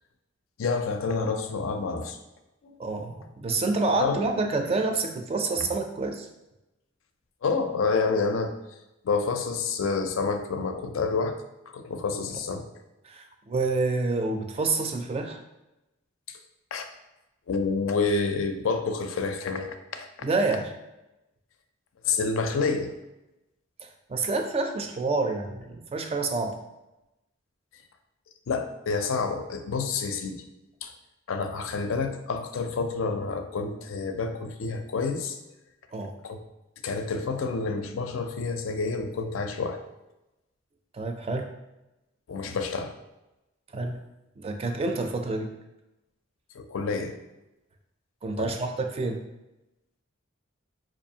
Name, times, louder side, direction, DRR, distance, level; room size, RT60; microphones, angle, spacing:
voice 1, 0.6-2.2 2.6-2.8 4.0-4.2 7.4-8.5 9.0-11.4 11.7-12.6 16.3-16.4 16.7-16.9 17.5-20.3 22.0-22.9 28.5-30.4 30.8-30.9 31.3-35.4 36.2-36.4 36.8-39.8 42.3-42.9 46.5-47.1 48.4-48.5, left 4 dB, 80° left, 7 dB, 0.4 m, -28 dB
voice 2, 2.8-6.3 13.0-15.4 20.2-20.7 24.1-26.6 35.9-36.1 40.9-41.5 42.4-42.6 43.7-44.0 44.4-45.5 48.2-49.2, right 3 dB, 30° right, 4 dB, 0.4 m, -28 dB
4.7 x 2.5 x 2.7 m, 0.97 s
head